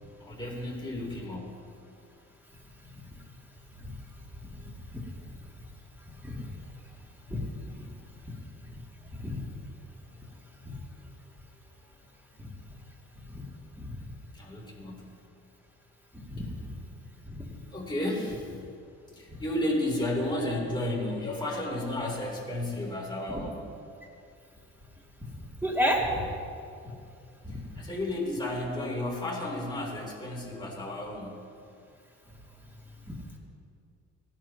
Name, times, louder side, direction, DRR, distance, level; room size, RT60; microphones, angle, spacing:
voice 1, 0.2-1.6 4.7-4.8 14.3-15.1 17.7-18.5 19.1-23.6 27.8-31.4, left 1 dB, 15° left, -3 dB, 3.5 m, -32 dB
voice 2, 4.6-5.0 6.2-6.5 7.3-7.4 7.8-7.9 8.3-8.4 9.2-9.4 10.7-10.8 12.4-12.5 13.3-13.4 13.8-13.9 16.3-16.4 17.4-17.5 23.3-23.4 25.6-26.2 27.4-27.6 33.1-33.4, equal, 5° right, -2 dB, 2.6 m, -31 dB
18.0 x 11.5 x 3.0 m, 2.4 s
cardioid pair, 90°, 30 cm